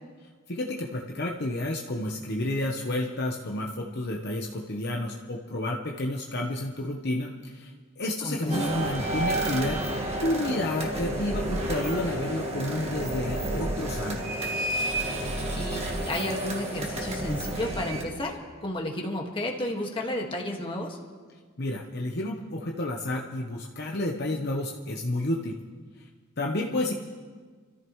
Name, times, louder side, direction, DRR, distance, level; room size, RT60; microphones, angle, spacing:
voice 1, 0.5-14.5 21.6-25.6 26.4-26.9, left 1 dB, 50° left, 0 dB, 1.0 m, -30 dB
voice 2, 8.2-8.9 15.6-21.0, left 1 dB, 25° left, 0 dB, 1.8 m, -32 dB
sound 1, 8.5-18.0, right 1 dB, 30° right, 1.9 m, -30 dB
28.5 x 14.0 x 3.1 m, 1.5 s
head